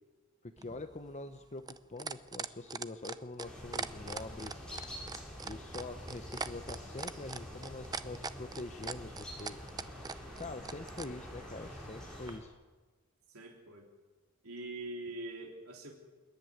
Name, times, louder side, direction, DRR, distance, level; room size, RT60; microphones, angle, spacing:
voice 1, 0.4-4.6 5.4-9.6 10.4-12.5, left 2 dB, 30° left, 8 dB, 0.8 m, -44 dB
sound 1, 0.6-11.1 12.3-12.4, right 4 dB, 15° right, 0.6 m, -40 dB
sound 2, 3.4-12.4, equal, 5° left, 6.2 m, -47 dB
voice 2, 13.3-13.9 14.4-15.9, right 2 dB, 70° right, 1 dB, 3.4 m, -43 dB
27.0 x 11.0 x 9.4 m, 1.3 s
head